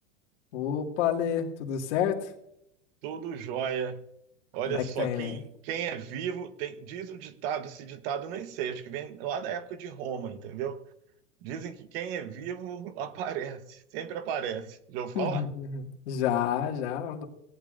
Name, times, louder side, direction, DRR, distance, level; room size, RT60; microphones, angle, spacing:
voice 1, 0.5-2.3 4.7-5.4 15.1-17.3, left 9 dB, 65° left, 2 dB, 2.2 m, -29 dB
voice 2, 3.0-4.0 4.5-10.8 11.4-15.4, right 8 dB, 50° right, 11 dB, 1.2 m, -35 dB
17.5 x 10.5 x 2.6 m, 0.75 s
supercardioid pair, 145°, 37 cm